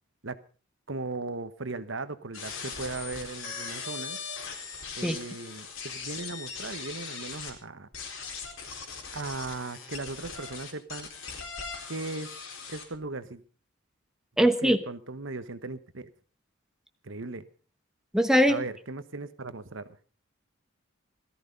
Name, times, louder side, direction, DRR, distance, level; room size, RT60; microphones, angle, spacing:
voice 1, 0.9-4.2 5.0-7.9 9.1-11.1 11.9-12.4 12.7-13.4 14.4-16.1 17.0-17.4 18.5-20.0, right 3 dB, 65° right, 12 dB, 1.1 m, -37 dB
sound 1, 2.3-7.5 7.9-12.8, left 5 dB, 85° left, 4.2 m, -39 dB
voice 2, 14.4-14.8 18.1-18.6, equal, 5° right, 7 dB, 1.0 m, -21 dB
17.5 x 14.0 x 5.3 m, 0.39 s
head